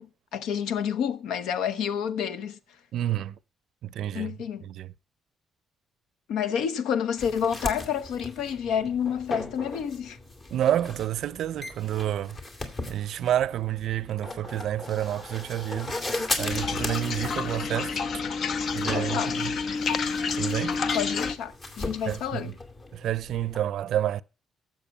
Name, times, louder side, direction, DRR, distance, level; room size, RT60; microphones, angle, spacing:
voice 1, 0.0-2.6 4.1-4.7 6.3-10.2 18.9-19.4 20.9-22.5, left 8 dB, 85° left, 0.8 m, -29 dB
voice 2, 2.9-3.3 3.8-4.3 4.7-4.9 10.5-12.4 12.9-15.9 16.4-18.0 18.7-19.5 20.3-20.8 22.1-22.4 22.9-24.2, right 11 dB, 75° right, 0.4 m, -29 dB
sound 1, 7.2-23.6, left 2 dB, 40° left, 2.6 m, -38 dB
sound 2, 16.4-21.3, left 5 dB, 60° left, 0.9 m, -29 dB
12.5 x 7.5 x 5.5 m
cardioid pair, 90°, 0 cm